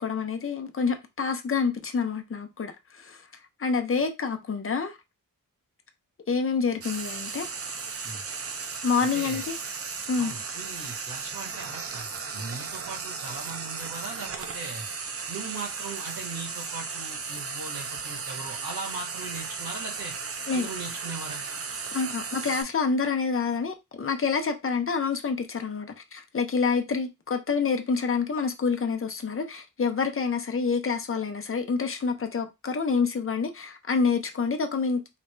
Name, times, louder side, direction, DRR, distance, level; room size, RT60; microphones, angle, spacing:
voice 1, 0.0-3.2 3.6-5.0 6.3-7.5 8.8-9.6 10.1-10.3 20.5-20.7 21.9-35.2, left 5 dB, 40° left, 0.6 m, -27 dB
Frying (food), 6.8-22.6, right 5 dB, 45° right, 0.5 m, -35 dB
voice 2, 9.0-9.4 10.2-14.8 15.3-20.1 20.5-21.4, right 3 dB, 90° right, 1.9 m, -39 dB
4.0 x 2.3 x 3.2 m
wide cardioid pair, 170°, 34 cm